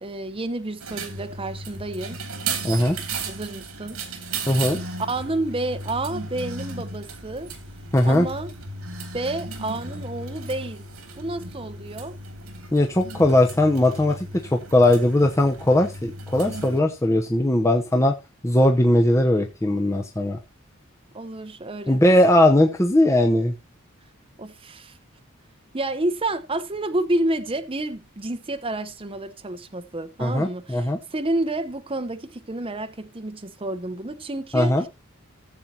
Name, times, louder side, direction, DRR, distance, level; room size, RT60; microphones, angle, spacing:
voice 1, 0.0-2.2 3.3-4.0 5.0-7.5 8.0-8.5 9.1-10.8 11.2-12.1 21.1-22.0 24.4-24.9 25.7-34.9, right 2 dB, 25° right, 0.9 m, -29 dB
sound 1, 0.8-16.8, right 3 dB, 80° right, 2.7 m, -35 dB
voice 2, 2.6-3.0 4.5-4.8 7.9-8.3 12.7-14.3 14.7-18.1 18.4-20.4 21.9-23.5 30.2-31.0 34.5-34.8, left 1 dB, 15° left, 0.8 m, -19 dB
16.0 x 7.5 x 2.9 m
head